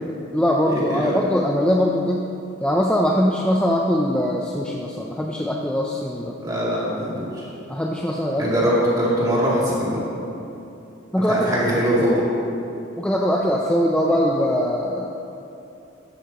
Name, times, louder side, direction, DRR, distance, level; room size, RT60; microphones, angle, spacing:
voice 1, 0.0-2.3 2.6-6.3 7.7-8.5 11.1-11.4 11.6-12.1 13.0-15.1, equal, 5° left, -2 dB, 0.5 m, -22 dB
voice 2, 6.4-7.5 8.4-10.0 11.3-12.2, equal, 20° right, -7 dB, 2.8 m, -22 dB
13.5 x 13.0 x 3.0 m, 2.9 s
head